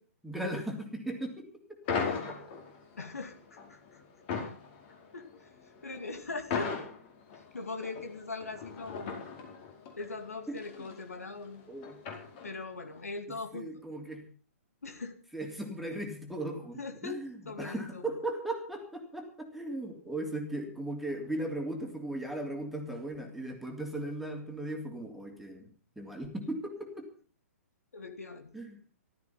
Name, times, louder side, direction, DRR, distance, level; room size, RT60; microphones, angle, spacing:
voice 1, 0.2-2.4 10.5-10.6 11.7-12.0 13.5-14.2 15.3-25.7 26.0-27.1 28.5-28.8, right 1 dB, ahead, 2 dB, 3.2 m, -37 dB
sound 1, 1.9-12.8, left 5 dB, 40° left, 4.8 m, -39 dB
voice 2, 3.0-4.0 5.1-6.7 7.3-9.3 10.0-11.7 12.4-13.8 14.8-15.2 16.8-18.1 27.9-28.6, left 3 dB, 75° left, 8 dB, 2.4 m, -41 dB
15.0 x 13.0 x 5.8 m, 0.41 s
figure-of-eight pair, 120°, 8 cm